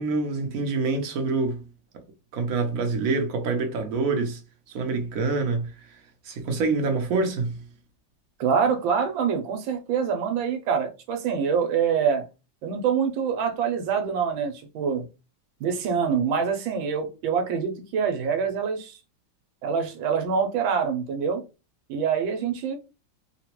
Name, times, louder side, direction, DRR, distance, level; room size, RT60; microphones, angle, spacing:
voice 1, 0.0-1.7 2.3-4.4 4.7-6.0 6.2-7.7, right 3 dB, 60° right, 0.9 m, -26 dB
voice 2, 8.4-12.3 12.6-15.1 15.6-19.0 19.6-21.4 21.9-22.8, right 6 dB, 85° right, 1.5 m, -25 dB
3.9 x 2.2 x 2.9 m
omnidirectional pair, 2.1 m